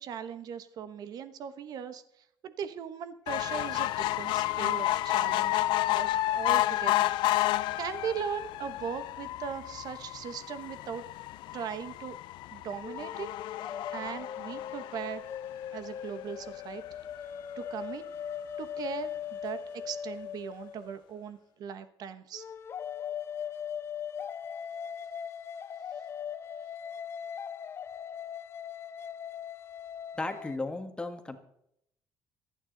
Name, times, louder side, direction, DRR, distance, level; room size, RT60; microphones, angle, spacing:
voice 1, 0.0-2.0 2.4-5.6 5.9-7.1 7.8-11.0 11.5-12.1 12.5-13.3 13.9-15.2 15.7-16.8 17.6-18.0 18.6-19.6 19.8-22.4, right 7 dB, 55° right, 11 dB, 1.1 m, -39 dB
sound 1, 3.3-15.9 16.4-16.5 16.8-16.9 17.2-17.3, left 15 dB, 85° left, 0.5 m, -31 dB
sound 2, 12.8-21.2 22.3-30.6, left 8 dB, 35° left, 0.5 m, -40 dB
voice 2, 30.1-31.4, left 2 dB, 10° left, 6 dB, 1.5 m, -35 dB
27.0 x 9.3 x 3.9 m, 0.75 s
cardioid pair, 155°, 8 cm